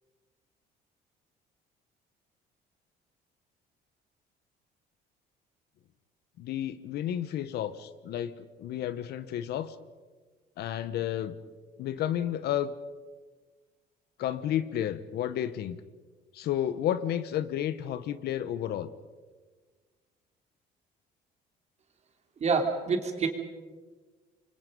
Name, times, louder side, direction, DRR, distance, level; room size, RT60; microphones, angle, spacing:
voice 1, 6.4-9.7 10.6-11.4 11.8-12.7 14.2-15.8 16.3-18.9, left 11 dB, 75° left, 13 dB, 1.2 m, -31 dB
voice 2, 22.4-23.3, right 4 dB, 40° right, 3 dB, 3.4 m, -27 dB
28.0 x 24.0 x 5.4 m, 1.4 s
cardioid pair, 110°, 17 cm